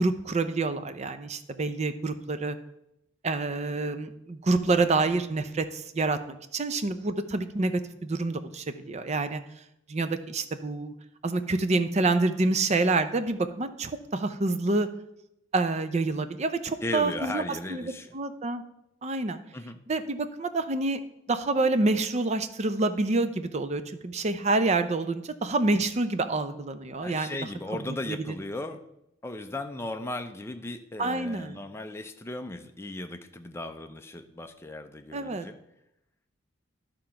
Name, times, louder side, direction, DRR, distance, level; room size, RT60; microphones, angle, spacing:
voice 1, 0.0-2.6 3.2-9.4 9.9-10.9 11.2-14.9 15.5-17.4 17.7-17.8 18.1-18.6 19.0-19.4 19.9-21.0 21.3-27.4 31.0-31.6 35.1-35.5, right 3 dB, 35° right, 10 dB, 0.5 m, -27 dB
voice 2, 16.8-18.2 19.5-19.8 27.0-28.8 29.2-35.6, left 2 dB, 15° left, 6 dB, 0.5 m, -36 dB
11.0 x 3.8 x 5.7 m, 0.83 s
head